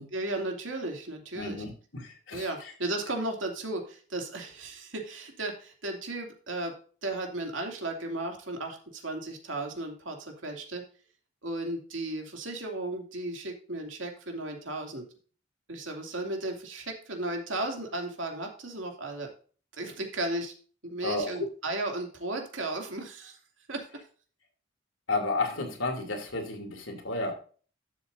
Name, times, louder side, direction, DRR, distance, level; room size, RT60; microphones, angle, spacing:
voice 1, 0.1-1.6 2.3-6.7 7.0-10.8 11.4-15.0 15.7-19.3 19.8-20.5 20.8-23.4 23.7-23.9, right 2 dB, 85° right, 3 dB, 2.6 m, -35 dB
voice 2, 1.3-2.7 21.0-21.5 25.1-27.3, left 2 dB, 90° left, 3 dB, 2.9 m, -32 dB
12.0 x 7.4 x 2.7 m, 0.40 s
head